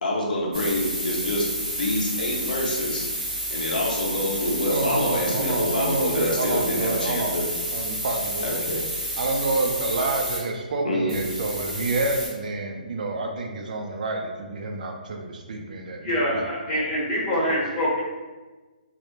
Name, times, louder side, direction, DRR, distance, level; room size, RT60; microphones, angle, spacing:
voice 1, 0.0-3.1 3.5-7.4 8.4-8.8 10.8-11.2, left 1 dB, 65° left, -2 dB, 0.6 m, -26 dB
sound 1, 0.5-10.4 11.1-12.3, equal, 5° right, 0.7 m, -30 dB
voice 2, 4.7-7.4 7.7-8.6 9.2-16.4, right 2 dB, 60° right, 2 dB, 0.4 m, -28 dB
voice 3, 16.0-18.0, equal, 30° left, -6 dB, 0.9 m, -25 dB
2.1 x 2.0 x 2.9 m, 1.3 s
figure-of-eight pair, 140°, 5 cm